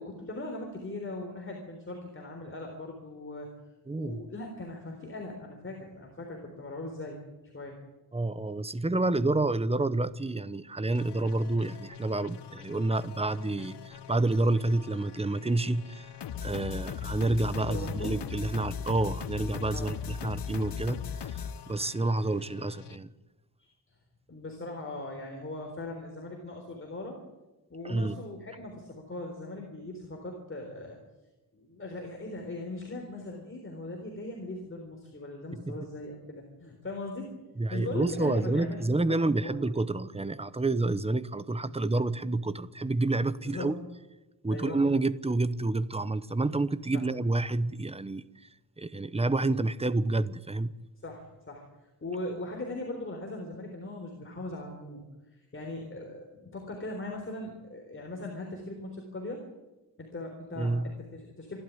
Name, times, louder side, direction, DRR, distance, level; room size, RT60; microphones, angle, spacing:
voice 1, 0.0-3.5 4.0-7.2 7.5-7.8 17.5-18.2 19.7-19.9 23.6-23.9 24.3-27.2 27.7-31.0 31.5-37.3 37.7-39.6 43.4-43.7 44.5-44.8 46.9-47.0 51.0-51.6 52.0-55.0 55.3-59.4 60.0-61.6, left 2 dB, 30° left, 3.9 m, -39 dB
voice 2, 3.9-4.2 8.1-16.1 16.4-23.1 27.8-28.2 35.7-35.8 37.6-43.7 44.4-48.2 48.8-50.7 60.6-60.9, right 2 dB, 15° right, 0.8 m, -29 dB
sound 1, 10.9-23.0, left 7 dB, 85° left, 1.1 m, -40 dB
27.5 x 12.5 x 9.7 m
wide cardioid pair, 145°, 40 cm